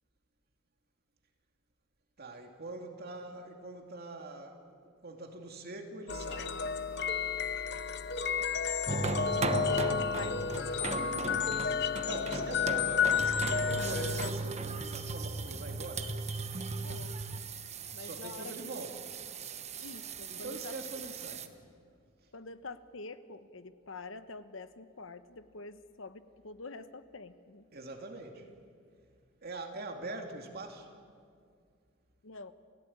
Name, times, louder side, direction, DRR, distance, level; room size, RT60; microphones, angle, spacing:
voice 1, 2.2-6.6 11.7-16.1 18.0-19.1 20.3-21.5 27.7-28.5 29.4-30.9, right 2 dB, 50° right, 3 dB, 2.5 m, -43 dB
sound 1, 6.1-14.3, left 6 dB, 60° left, 0.9 m, -32 dB
sound 2, 8.9-21.5, right 3 dB, 35° right, 1.2 m, -37 dB
voice 2, 9.0-11.5 12.6-12.7 16.8-17.2 17.9-18.5 19.8-20.7 22.3-27.7 32.2-32.5, left 3 dB, 80° left, 11 dB, 1.2 m, -46 dB
29.0 x 17.5 x 8.7 m, 2.2 s
head